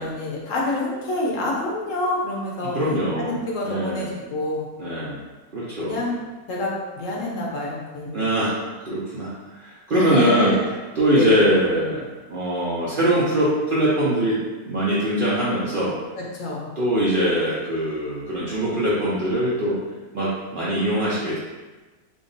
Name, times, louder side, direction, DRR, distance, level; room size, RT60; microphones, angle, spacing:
voice 1, 0.0-2.8 3.2-4.7 5.8-6.2 6.5-8.3 9.9-10.7 11.1-11.4 16.2-16.7, left 2 dB, 65° left, -3 dB, 0.9 m, -27 dB
voice 2, 2.6-3.4 3.7-4.1 4.8-5.2 5.5-6.0 8.1-10.5 11.0-14.4 14.7-16.0 16.8-19.8 20.1-21.4, right 1 dB, 65° right, -8 dB, 0.5 m, -22 dB
3.6 x 2.0 x 3.8 m, 1.2 s
omnidirectional pair, 1.6 m